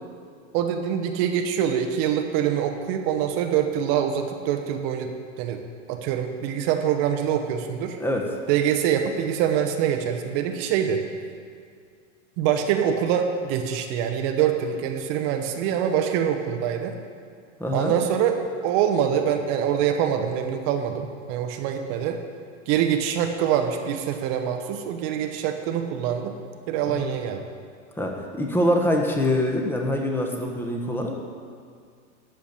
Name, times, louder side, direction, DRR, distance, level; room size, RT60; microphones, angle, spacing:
voice 1, 0.5-5.1 5.4-5.6 5.9-8.0 8.5-11.0 12.4-16.9 17.7-18.4 18.6-22.2 22.7-26.3 26.7-27.4, right 9 dB, 50° right, 5 dB, 1.2 m, -24 dB
voice 2, 17.6-17.9 26.9-27.1 28.0-31.1, left 1 dB, 5° left, 1 dB, 1.5 m, -24 dB
13.5 x 5.1 x 8.7 m, 2.2 s
hypercardioid pair, 120°, 38 cm